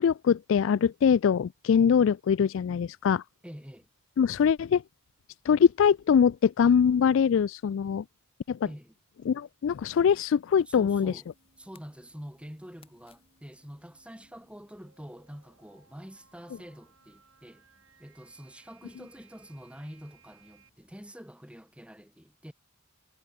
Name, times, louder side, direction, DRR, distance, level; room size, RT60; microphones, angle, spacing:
voice 1, 0.0-3.2 4.2-4.8 5.5-8.0 8.5-8.6 9.3-11.1, left 7 dB, 60° left, 0.3 m, -23 dB
voice 2, 3.4-3.9 8.7-8.9 10.7-11.3 11.6-17.6 18.0-22.5, equal, 5° right, 2.8 m, -46 dB
sound 1, 10.0-21.1, left 4 dB, 25° left, 6.1 m, -68 dB
sound 2, 11.1-20.7, right 6 dB, 60° right, 4.0 m, -64 dB
head